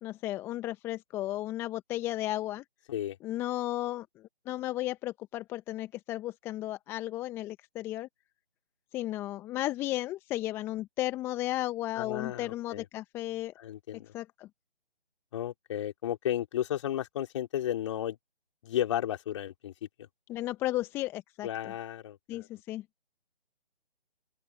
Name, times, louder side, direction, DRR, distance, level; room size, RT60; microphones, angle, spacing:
voice 1, 0.0-2.6 3.2-4.1 4.5-8.1 8.9-13.5 14.1-14.5 20.3-21.7 22.3-22.8, left 15 dB, 5° left, 1.2 m, -34 dB
voice 2, 12.0-12.8 13.6-14.1 15.3-18.2 18.6-19.7 21.4-22.5, left 11 dB, 25° left, 3.5 m, -33 dB
open air
figure-of-eight pair, 150°, 33 cm